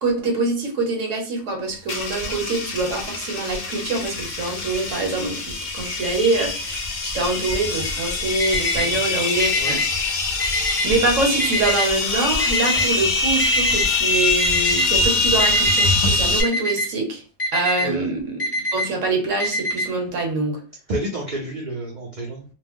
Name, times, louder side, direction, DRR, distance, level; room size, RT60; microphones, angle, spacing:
voice 1, 0.0-10.2 10.6-17.2 17.5-18.4 18.7-20.6, right 3 dB, 65° right, 3 dB, 1.1 m, -25 dB
sound 1, 1.9-16.4, left 2 dB, 60° left, 0.4 m, -23 dB
Alarm, 8.4-8.9 9.4-9.9 10.4-10.9 11.4-11.9 12.4-12.9 13.4-13.9 14.4-14.9 15.4-15.9 16.4-16.9 17.4-17.9 18.4-18.9 19.4-19.9, left 1 dB, 30° left, 0.9 m, -24 dB
voice 2, 17.8-18.1 20.9-22.4, right 1 dB, 50° right, -3 dB, 0.6 m, -30 dB
2.4 x 2.0 x 3.5 m, 0.38 s
omnidirectional pair, 1.4 m